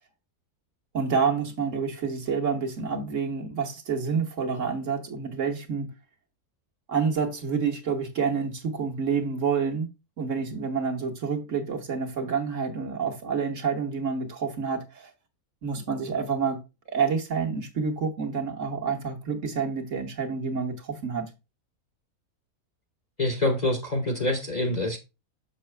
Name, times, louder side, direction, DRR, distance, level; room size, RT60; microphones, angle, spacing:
voice 1, 0.9-5.9 6.9-9.9 10.2-15.1 15.6-16.6 16.9-21.3, right 5 dB, 55° right, 1.5 m, -28 dB
voice 2, 23.2-25.0, left 2 dB, 35° left, 0.8 m, -26 dB
6.6 x 5.6 x 3.2 m
omnidirectional pair, 1.6 m